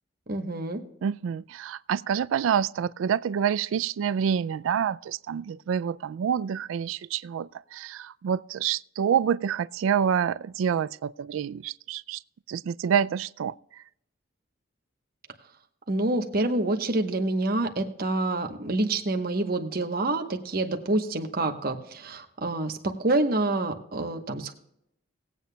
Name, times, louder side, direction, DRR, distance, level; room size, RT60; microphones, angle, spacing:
voice 1, 0.3-0.8 15.9-24.5, right 2 dB, 50° right, 1.1 m, -27 dB
voice 2, 1.0-12.2 12.5-13.5, right 8 dB, 85° right, 0.3 m, -27 dB
19.5 x 8.4 x 2.3 m
head